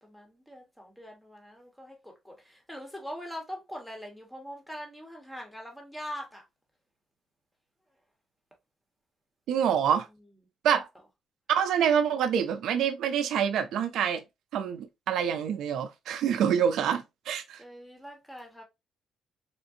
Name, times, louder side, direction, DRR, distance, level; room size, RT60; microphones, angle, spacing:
voice 1, 0.0-6.4 10.7-10.8 17.6-18.6, equal, 5° left, 1.4 m, -42 dB
voice 2, 9.5-10.1 10.6-10.9 11.5-14.2 14.5-17.6, right 8 dB, 80° right, 0.5 m, -26 dB
3.7 x 2.5 x 2.7 m
cardioid pair, 90°, 0 cm